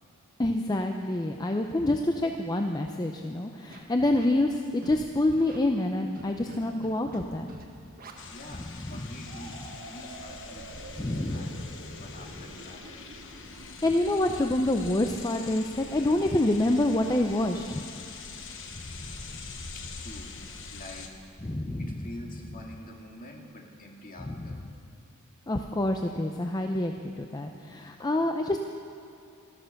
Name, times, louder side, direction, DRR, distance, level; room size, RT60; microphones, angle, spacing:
voice 1, 0.4-7.5 8.5-9.1 11.0-12.0 13.6-17.8 21.4-22.0 24.2-24.6 25.5-28.6, left 1 dB, 20° left, 4 dB, 0.5 m, -27 dB
Scratching (performance technique), 3.7-4.3 4.8-5.0 5.3-5.6 6.2-6.6 6.8-7.2 7.5-7.6 8.0-8.1, right 2 dB, 40° right, 1.4 m, -45 dB
sound 1, 8.2-21.1, left 4 dB, 60° left, 1.1 m, -44 dB
voice 2, 8.3-9.6 9.8-11.6 12.0-13.1 19.1-19.2 19.5-20.3 20.7-21.1 21.8-24.6, left 1 dB, 40° left, 0 dB, 2.0 m, -46 dB
sound 2, 9.3-16.9, right 2 dB, 65° right, 1.9 m, -49 dB
13.5 x 12.5 x 6.5 m, 2.8 s
head